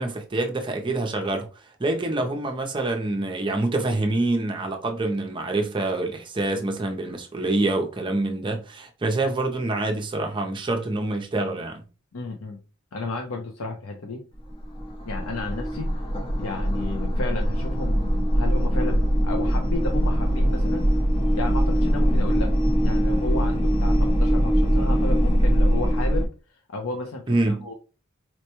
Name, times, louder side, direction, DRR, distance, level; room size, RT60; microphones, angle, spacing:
voice 1, 0.0-1.5 1.8-11.8 27.3-27.6, right 2 dB, 25° right, 0.5 m, -26 dB
voice 2, 12.1-12.6 12.9-14.2 15.0-16.1 16.4-20.9 21.3-27.7, left 3 dB, 80° left, 0.6 m, -33 dB
sound 1, 14.3-26.3, equal, 25° left, 0.6 m, -22 dB
4.3 x 2.1 x 2.9 m
head